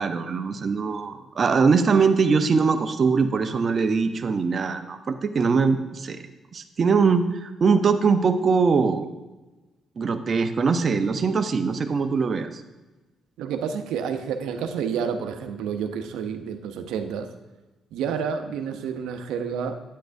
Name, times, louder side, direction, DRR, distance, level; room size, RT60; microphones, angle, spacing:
voice 1, 0.0-6.2 6.5-9.1 10.0-12.5, right 5 dB, 45° right, 8 dB, 0.6 m, -22 dB
voice 2, 13.4-17.3 17.9-19.8, right 7 dB, 90° right, 7 dB, 0.6 m, -29 dB
9.2 x 8.4 x 2.6 m, 1.2 s
cardioid pair, 90°, 0 cm